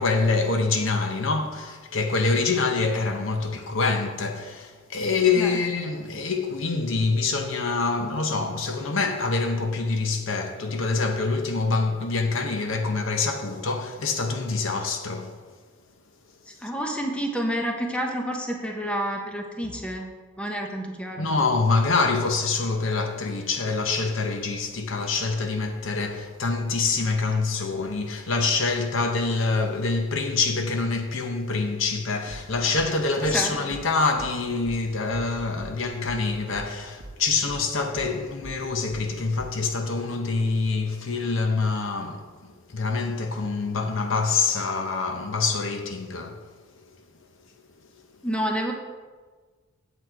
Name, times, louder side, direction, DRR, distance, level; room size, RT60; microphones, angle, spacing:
voice 1, 0.0-15.4 21.2-46.4, left 4 dB, 60° left, 0.8 m, -25 dB
voice 2, 16.6-21.3 33.3-33.5 48.2-48.7, equal, 5° left, 0.9 m, -29 dB
sound 1, 32.3-37.2 37.5-39.7, right 1 dB, 40° right, 1.1 m, -43 dB
7.9 x 7.8 x 4.6 m
head